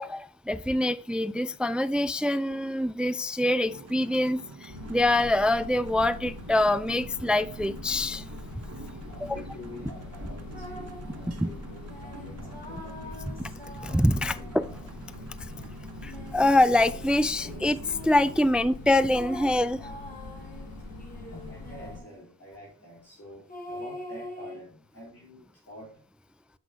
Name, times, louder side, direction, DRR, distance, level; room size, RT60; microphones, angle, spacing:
voice 1, 0.0-8.3 8.6-8.7 9.2-9.4 11.2-11.5 13.4-13.5 13.8-14.7 16.0-19.9, left 1 dB, 5° right, 16 dB, 0.4 m, -25 dB
sound 1, 3.6-18.5, right 3 dB, 45° right, 1.0 m, -47 dB
sound 2, 4.7-22.0, left 2 dB, 85° left, 2.7 m, -43 dB
voice 2, 9.0-13.3 14.0-14.5 20.8-20.9 21.3-26.0, left 1 dB, 45° left, -5 dB, 3.6 m, -48 dB
sound 3, 10.5-11.1 11.9-15.1 16.0-18.5 19.1-22.2 23.5-24.6, left 1 dB, 25° left, 3.7 m, -44 dB
8.0 x 5.9 x 4.9 m, 0.43 s
cardioid pair, 55°, 34 cm